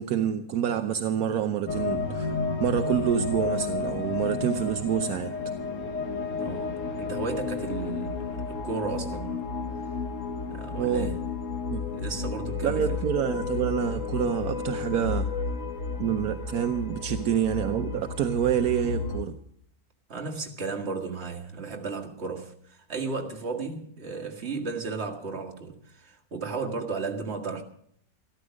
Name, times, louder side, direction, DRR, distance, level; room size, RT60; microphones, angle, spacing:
voice 1, 0.0-2.3 2.6-5.3 10.7-11.1 11.7-11.8 12.6-15.3 16.0-19.4, right 9 dB, 75° right, 1.2 m, -27 dB
sound 1, 1.7-19.2, left 4 dB, 60° left, 1.5 m, -32 dB
voice 2, 6.4-9.5 10.5-11.3 11.9-13.0 20.1-27.6, right 4 dB, 45° right, 1.9 m, -34 dB
13.5 x 13.0 x 6.3 m
omnidirectional pair, 1.6 m